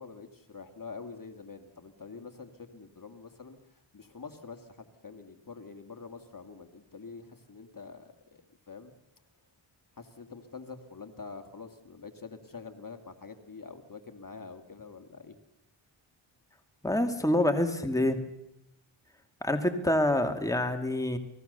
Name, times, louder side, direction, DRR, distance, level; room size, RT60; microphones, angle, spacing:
voice 1, 0.0-3.6 3.9-8.4 8.7-8.9 10.0-15.3, left 4 dB, 40° left, 6 dB, 2.3 m, -46 dB
voice 2, 16.8-18.2 19.4-21.2, left 1 dB, 5° left, 5 dB, 2.5 m, -26 dB
28.0 x 19.5 x 6.9 m, 0.82 s
cardioid pair, 50°, 49 cm